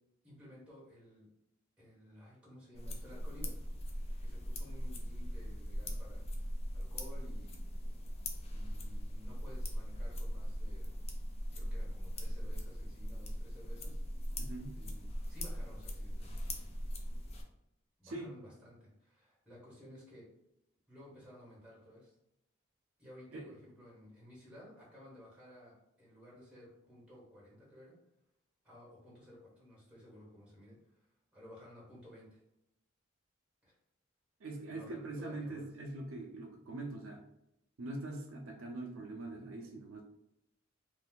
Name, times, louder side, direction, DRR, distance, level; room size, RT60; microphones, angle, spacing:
voice 1, 0.2-1.3 1.8-3.7 4.2-6.2 6.7-7.6 8.5-11.0 11.5-14.0 14.7-16.8 18.0-20.3 20.9-22.2 23.0-27.9 28.6-31.0 31.3-32.4 33.6-33.7 34.7-35.7, left 1 dB, 5° right, -6 dB, 1.3 m, -55 dB
sound 1, 2.7-17.4, equal, 30° left, 0.4 m, -40 dB
voice 2, 14.4-14.8 18.0-18.3 23.3-23.5 34.4-37.2 37.8-40.0, right 2 dB, 75° right, 2 dB, 0.5 m, -43 dB
2.6 x 2.3 x 3.7 m, 0.84 s
head